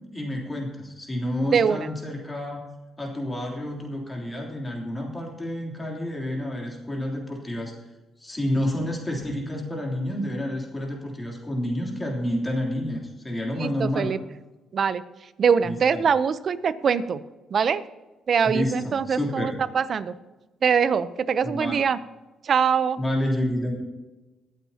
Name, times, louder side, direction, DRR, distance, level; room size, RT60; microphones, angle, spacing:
voice 1, 0.1-2.6 3.0-7.9 8.2-14.1 15.6-16.0 18.4-19.6 21.4-21.8 23.0-23.8, left 1 dB, 15° left, -1 dB, 3.2 m, -29 dB
voice 2, 1.5-1.9 13.6-14.2 14.7-15.0 15.4-17.2 17.5-17.8 18.3-20.1 20.6-22.0 22.4-23.0, right 6 dB, 50° right, 14 dB, 0.6 m, -23 dB
22.5 x 8.4 x 2.9 m, 1.1 s
cardioid pair, 90°, 0 cm